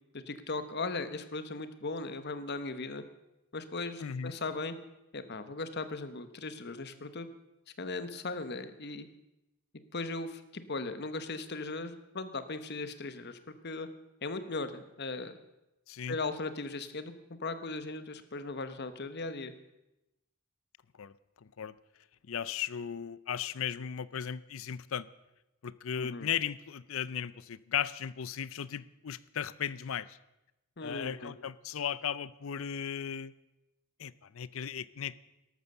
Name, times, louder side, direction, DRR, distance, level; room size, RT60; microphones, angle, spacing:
voice 1, 0.1-3.0 3.5-4.7 5.1-7.3 7.8-9.1 9.9-13.4 13.6-13.9 14.2-15.4 16.1-17.1 17.4-19.5 26.0-26.3 30.8-31.3, left 3 dB, 50° left, 11 dB, 1.1 m, -38 dB
voice 2, 4.0-4.3 15.9-16.2 21.0-21.1 21.4-21.7 22.3-25.1 25.6-30.2 30.8-33.3 34.0-35.2, left 8 dB, 70° left, 18 dB, 0.5 m, -36 dB
13.0 x 12.5 x 6.7 m, 0.95 s
head